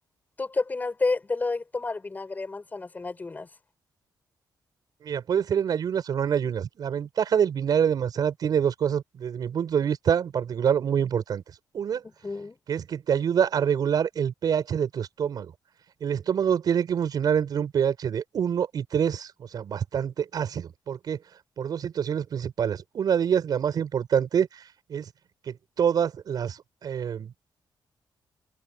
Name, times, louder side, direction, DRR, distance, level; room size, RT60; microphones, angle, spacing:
voice 1, 0.4-3.5 12.2-12.6, left 3 dB, 20° left, 5.9 m, -30 dB
voice 2, 5.0-11.4 11.7-12.0 12.7-15.5 16.0-21.2 21.6-24.6 24.9-25.0 25.5-27.3, right 8 dB, 60° right, 5.6 m, -26 dB
wide cardioid pair, 145°, 8 cm